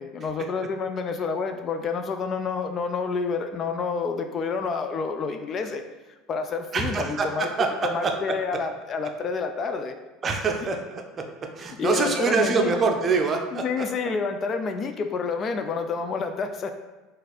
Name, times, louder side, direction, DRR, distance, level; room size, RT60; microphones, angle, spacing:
voice 1, 0.0-5.8 6.1-7.5 7.8-9.9 11.8-12.7 13.5-16.7, left 4 dB, 40° left, 7 dB, 0.3 m, -29 dB
voice 2, 6.7-8.1 10.2-11.2 11.6-13.9, right 4 dB, 35° right, 3 dB, 0.6 m, -25 dB
4.1 x 2.5 x 4.0 m, 1.2 s
supercardioid pair, 100°, 0 cm